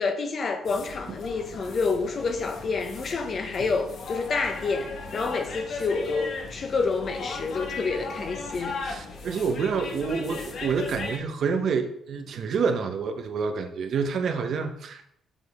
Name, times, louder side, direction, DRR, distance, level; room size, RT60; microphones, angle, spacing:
voice 1, 0.0-8.8, left 4 dB, 50° left, 1.1 m, -28 dB
sound 1, 0.6-11.2, left 3 dB, 65° left, 1.4 m, -37 dB
voice 2, 8.8-15.0, right 5 dB, 65° right, 1.0 m, -28 dB
7.3 x 6.3 x 3.6 m
cardioid pair, 90°, 0 cm